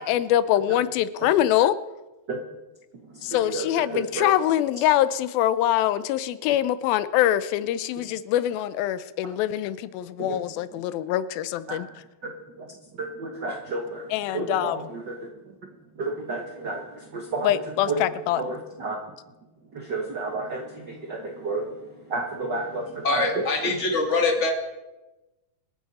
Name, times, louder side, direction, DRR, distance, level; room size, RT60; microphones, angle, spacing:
voice 1, 0.0-1.8 3.2-11.9 14.1-14.9 17.4-18.4, left 12 dB, 90° left, 15 dB, 2.5 m, -24 dB
voice 2, 3.1-4.3 10.2-10.4 11.7-11.8 12.2-12.3 12.6-12.7 12.9-14.1 14.3-15.1 16.0-17.6 17.9-18.0 18.4-19.0 19.7-21.7 22.1-23.3, right 3 dB, 65° right, 2 dB, 1.0 m, -31 dB
voice 3, 23.0-24.5, left 3 dB, 35° left, 3 dB, 1.2 m, -23 dB
26.0 x 9.3 x 4.2 m, 1.1 s
omnidirectional pair, 4.1 m